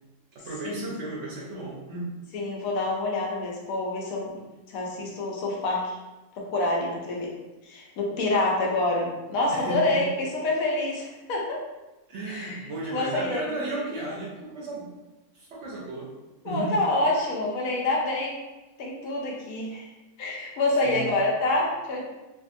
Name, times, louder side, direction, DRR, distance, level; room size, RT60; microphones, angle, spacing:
voice 1, 0.3-2.1 9.5-10.1 12.1-14.9 15.3-16.1 16.4-16.8 20.8-21.2, right 2 dB, 65° right, -4 dB, 0.8 m, -34 dB
voice 2, 2.3-4.4 4.7-6.0 6.4-7.3 7.6-11.6 12.3-12.6 12.9-13.4 16.4-18.4 18.8-19.9 20.2-22.0, left 2 dB, 75° left, -2 dB, 1.0 m, -27 dB
2.6 x 2.6 x 2.5 m, 1.1 s
omnidirectional pair, 1.5 m